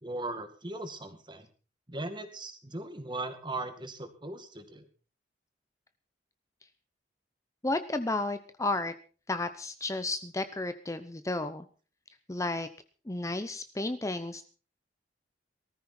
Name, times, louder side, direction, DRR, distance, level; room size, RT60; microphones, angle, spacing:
voice 1, 0.0-1.5 1.9-4.9, right 2 dB, 25° right, 8 dB, 2.1 m, -38 dB
voice 2, 7.6-8.9 9.3-11.7 12.3-12.7 13.1-14.4, left 2 dB, 20° left, 9 dB, 0.8 m, -32 dB
18.5 x 13.5 x 4.4 m, 0.37 s
head